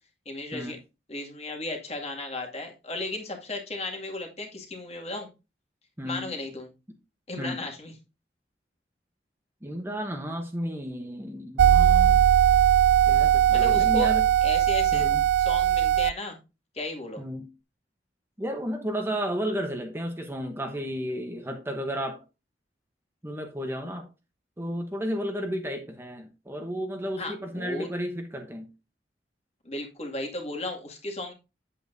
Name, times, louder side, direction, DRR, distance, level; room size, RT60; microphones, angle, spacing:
voice 1, 0.3-0.8 1.1-5.3 6.0-6.7 7.3-7.9 13.5-14.1 14.4-15.1 15.5-16.4 16.7-17.2 27.2-27.9 29.6-31.3, left 2 dB, 35° left, 2 dB, 2.2 m, -35 dB
voice 2, 6.0-6.3 7.4-7.6 9.6-12.2 13.1-14.3 14.9-15.2 17.2-17.5 18.4-22.2 23.2-24.1 24.6-28.7, equal, 15° right, 4 dB, 1.0 m, -33 dB
sound 1, 11.6-16.1, right 10 dB, 75° right, 0.3 m, -20 dB
8.8 x 8.0 x 2.7 m, 0.28 s
head